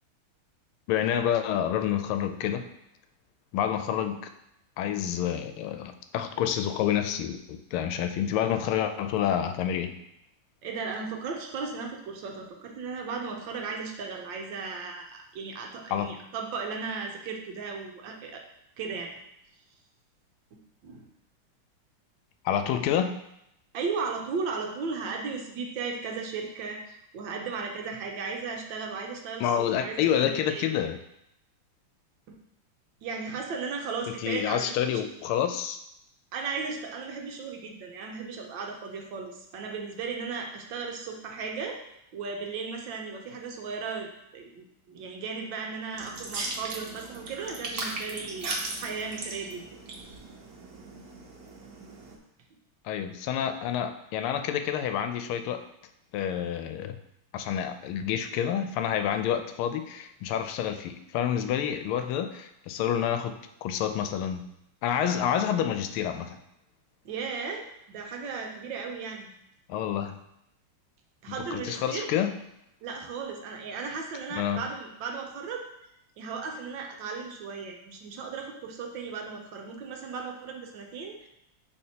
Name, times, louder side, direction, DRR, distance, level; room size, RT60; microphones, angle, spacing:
voice 1, 0.9-2.6 3.5-4.3 4.8-9.9 15.9-16.1 22.4-23.1 29.4-31.0 34.2-35.8 52.8-55.6 56.1-57.0 57.3-64.5 64.8-66.4 69.7-70.2 71.3-72.3 74.3-74.6, left 9 dB, 90° left, 8 dB, 1.5 m, -28 dB
voice 2, 10.6-18.4 18.8-19.1 20.5-21.0 23.7-30.6 32.3-32.4 33.0-35.0 36.3-41.8 42.1-49.6 52.0-52.2 67.0-69.3 71.2-72.1 72.8-75.7 76.2-81.3, right 5 dB, 70° right, 2 dB, 1.3 m, -36 dB
sound 1, 45.9-52.2, right 2 dB, 55° right, 1.2 m, -38 dB
10.0 x 3.4 x 2.8 m, 0.81 s
omnidirectional pair, 2.3 m